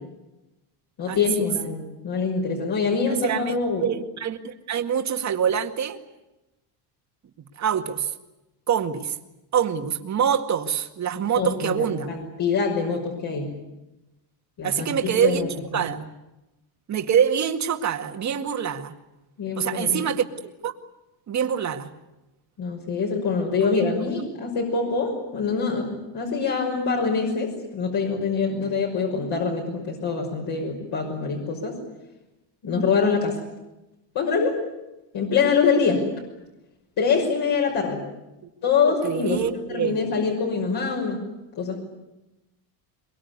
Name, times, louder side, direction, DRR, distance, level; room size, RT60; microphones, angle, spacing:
voice 1, 1.0-3.9 11.4-13.5 14.6-15.5 19.4-20.0 22.6-31.8 32.6-33.4 34.1-34.6 35.1-36.0 37.0-38.0 38.6-41.2 41.6-41.8, left 5 dB, 55° left, -1 dB, 5.9 m, -24 dB
voice 2, 3.0-6.0 7.4-8.1 8.7-9.2 9.5-12.2 14.6-15.5 15.7-16.1 16.9-18.9 19.6-20.2 20.6-20.8 21.3-21.9 23.8-23.9 38.9-40.0, right 8 dB, 35° right, 6 dB, 2.0 m, -25 dB
23.0 x 23.0 x 9.7 m, 0.97 s
cardioid pair, 140°, 47 cm